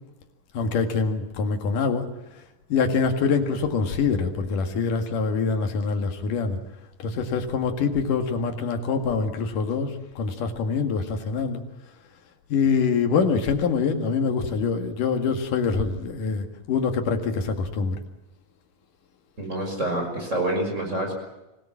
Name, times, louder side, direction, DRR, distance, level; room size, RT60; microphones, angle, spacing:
voice 1, 0.5-2.1 2.7-6.6 7.0-11.6 12.5-18.0, left 5 dB, 65° left, 5 dB, 3.4 m, -25 dB
voice 2, 19.4-21.1, right 1 dB, 20° right, 2 dB, 6.1 m, -27 dB
25.5 x 17.5 x 7.4 m, 1.0 s
omnidirectional pair, 4.2 m